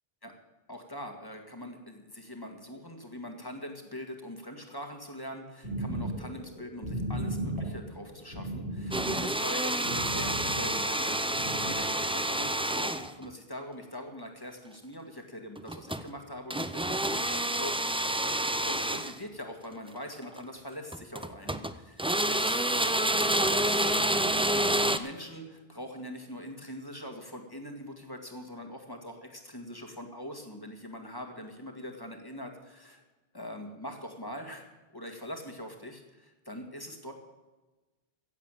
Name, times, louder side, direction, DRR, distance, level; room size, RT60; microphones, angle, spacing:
voice 1, 0.7-18.2 18.7-22.0 22.3-22.9 23.4-23.9 24.5-33.0 33.3-34.7 34.9-37.1, left 1 dB, 20° left, 4 dB, 1.9 m, -43 dB
sound 1, 5.6-11.0 11.3-11.7, right 1 dB, 85° right, 4.2 m, -36 dB
sound 2, 8.9-13.3 15.6-16.1 16.5-19.2 20.2-20.4 20.9-21.7 22.0-25.0, right 1 dB, 10° right, 0.4 m, -28 dB
16.0 x 7.5 x 7.5 m, 1.2 s
omnidirectional pair, 1.0 m